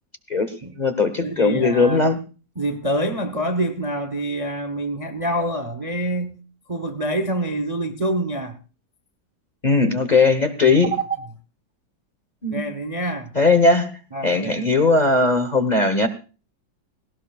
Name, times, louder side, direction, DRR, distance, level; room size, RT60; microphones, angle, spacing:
voice 1, 0.3-2.2 9.6-10.9 12.4-12.6 13.3-13.9 14.2-16.1, left 3 dB, 30° left, 1.0 m, -18 dB
voice 2, 1.2-2.1 2.6-6.4 6.7-8.6 10.5-11.2 12.5-13.3 14.1-14.7, right 1 dB, 25° right, 0.8 m, -26 dB
18.5 x 18.0 x 2.4 m
omnidirectional pair, 2.0 m